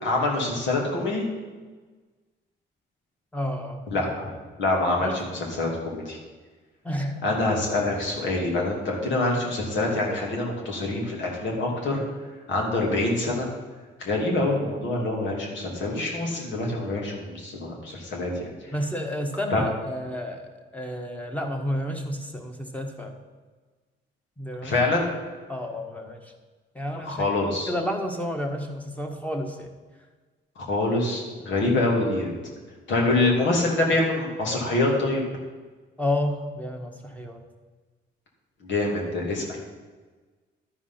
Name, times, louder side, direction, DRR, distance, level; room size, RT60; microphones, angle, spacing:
voice 1, 0.0-1.2 3.9-4.3 4.6-5.3 5.6-6.2 7.2-12.0 12.5-13.5 14.0-18.3 18.6-18.7 19.5-19.6 24.6-25.1 27.0-27.7 30.6-32.3 32.9-35.2 38.6-39.6, left 2 dB, 70° left, -1 dB, 2.8 m, -25 dB
voice 2, 3.3-4.1 5.0-5.2 6.8-7.2 18.7-23.1 24.4-24.8 25.5-26.3 26.7-27.2 27.7-29.7 36.0-37.4, left 1 dB, 5° left, 2 dB, 1.5 m, -31 dB
12.5 x 4.9 x 5.8 m, 1.4 s
cardioid pair, 90°, 20 cm